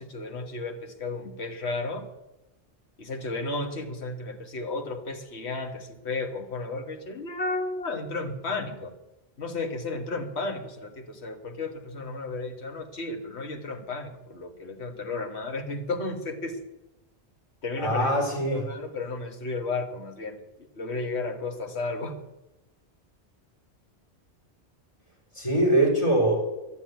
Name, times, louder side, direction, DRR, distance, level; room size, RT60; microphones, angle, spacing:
voice 1, 0.0-2.1 3.0-8.9 9.4-16.6 17.6-18.1 18.5-20.4 20.8-22.2, left 3 dB, 75° left, 6 dB, 1.7 m, -33 dB
voice 2, 17.8-18.7 25.3-26.3, right 1 dB, 25° left, -2 dB, 4.4 m, -23 dB
12.0 x 8.4 x 9.2 m, 1.0 s
omnidirectional pair, 1.1 m